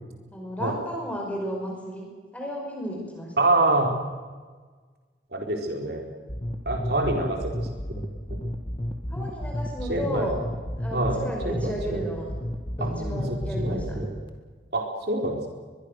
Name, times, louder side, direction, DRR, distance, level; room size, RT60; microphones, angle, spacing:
voice 1, 0.3-3.3 9.1-10.4 10.8-12.3 12.8-14.0, equal, 10° left, -1 dB, 5.4 m, -33 dB
voice 2, 3.4-3.9 5.3-6.0 6.7-7.7 8.3-8.4 9.9-10.3 10.9-11.2 11.4-12.0 12.8-14.1 14.7-15.5, right 2 dB, 60° right, 3 dB, 4.2 m, -26 dB
sound 1, 6.3-14.3, equal, 25° left, 1.9 m, -32 dB
22.5 x 22.0 x 6.5 m, 1.5 s
head